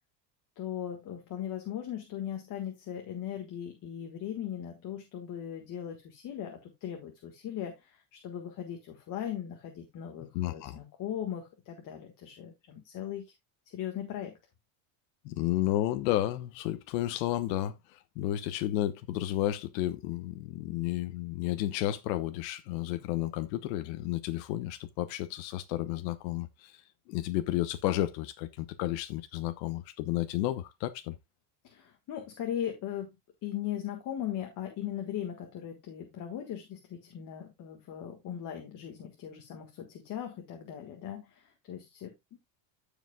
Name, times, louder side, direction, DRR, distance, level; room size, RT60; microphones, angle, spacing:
voice 1, 0.5-13.3 13.6-14.4 31.6-33.1 33.4-42.4, left 10 dB, 40° left, 1.6 m, -39 dB
voice 2, 10.3-10.8 15.2-26.8 27.1-31.2, left 14 dB, 90° left, 1.0 m, -32 dB
15.5 x 5.1 x 2.3 m
cardioid pair, 155°, 49 cm